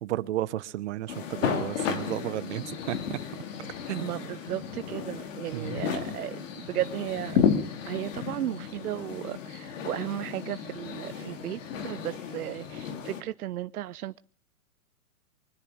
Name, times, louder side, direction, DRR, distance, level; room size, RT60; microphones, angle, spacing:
voice 1, 0.0-3.2 3.9-4.1 5.5-5.8, right 14 dB, 50° right, 0.9 m, -33 dB
sound 1, 1.1-13.2, left 7 dB, 60° left, 2.7 m, -33 dB
voice 2, 4.0-7.4 7.9-14.2, right 13 dB, 80° right, 0.6 m, -35 dB
24.5 x 10.5 x 5.0 m
hypercardioid pair, 140°, 44 cm